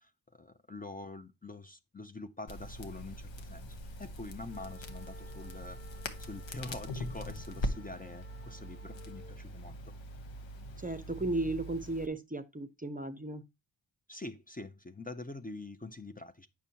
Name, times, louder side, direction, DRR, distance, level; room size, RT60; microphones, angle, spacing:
voice 1, 0.0-9.8 14.1-16.5, left 2 dB, 20° left, 0.6 m, -45 dB
Crackle, 2.5-12.1, equal, 80° left, 1.1 m, -42 dB
sound 1, 4.5-9.4, left 2 dB, ahead, 1.5 m, -57 dB
voice 2, 10.8-13.4, right 2 dB, 20° right, 0.6 m, -35 dB
8.7 x 6.1 x 2.8 m
cardioid pair, 70°, 44 cm